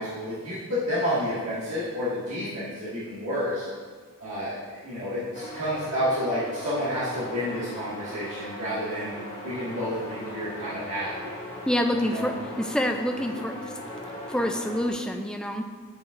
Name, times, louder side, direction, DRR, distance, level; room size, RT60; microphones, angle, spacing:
voice 1, 0.0-3.6 4.2-9.1 9.4-11.3 11.9-12.3, equal, 85° right, -12 dB, 1.8 m, -30 dB
sound 1, 5.4-14.9, left 1 dB, 35° left, 1.4 m, -39 dB
voice 2, 11.7-12.3 12.6-13.8 14.3-15.6, equal, 5° left, 4 dB, 0.3 m, -27 dB
9.2 x 5.4 x 2.5 m, 1.5 s
head